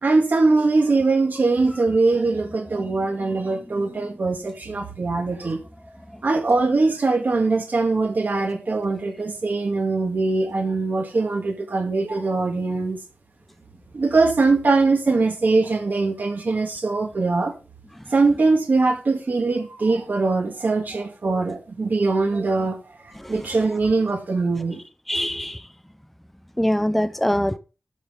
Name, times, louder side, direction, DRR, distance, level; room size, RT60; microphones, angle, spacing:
voice 1, 0.0-5.6 6.2-13.0 13.9-17.5 18.1-22.8 23.3-24.8, right 3 dB, 65° right, 1.8 m, -21 dB
voice 2, 25.1-25.6 26.6-27.6, equal, 5° left, 0.6 m, -23 dB
12.5 x 5.6 x 3.6 m
wide cardioid pair, 85°, 3 cm